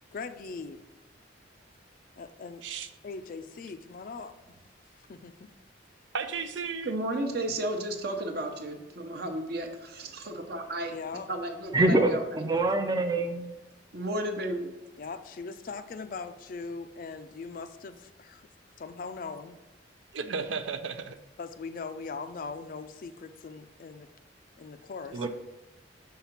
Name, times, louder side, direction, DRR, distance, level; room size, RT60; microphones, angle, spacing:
voice 1, 0.1-0.8 2.2-2.6 3.0-4.6 5.1-5.5 10.9-11.3 11.8-12.1 15.0-18.5 18.8-19.6 21.4-24.1 24.6-25.3, left 4 dB, 45° left, 10 dB, 0.4 m, -40 dB
voice 2, 6.1-6.9 20.1-21.2 25.1-25.3, right 5 dB, 75° right, 9 dB, 0.5 m, -34 dB
voice 3, 6.8-10.9 11.3-12.2 13.9-14.7, right 1 dB, 55° right, 5 dB, 0.9 m, -33 dB
voice 4, 11.7-13.5 25.2-25.3, right 2 dB, 20° right, 6 dB, 0.4 m, -25 dB
5.7 x 3.8 x 5.8 m, 1.1 s
head